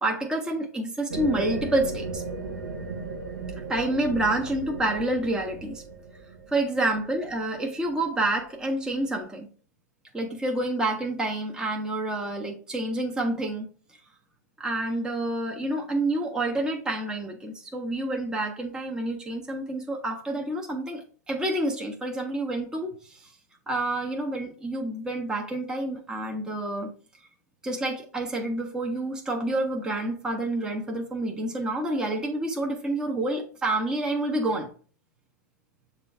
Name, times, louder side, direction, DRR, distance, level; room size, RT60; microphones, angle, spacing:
voice 1, 0.0-2.2 3.7-5.8 6.5-9.5 10.1-13.7 14.6-23.3 23.7-26.9 27.6-34.7, right 1 dB, 5° right, 0.6 m, -28 dB
sound 1, 1.1-8.4, right 3 dB, 90° right, 0.6 m, -37 dB
6.7 x 2.3 x 3.4 m
hypercardioid pair, 115°, 10 cm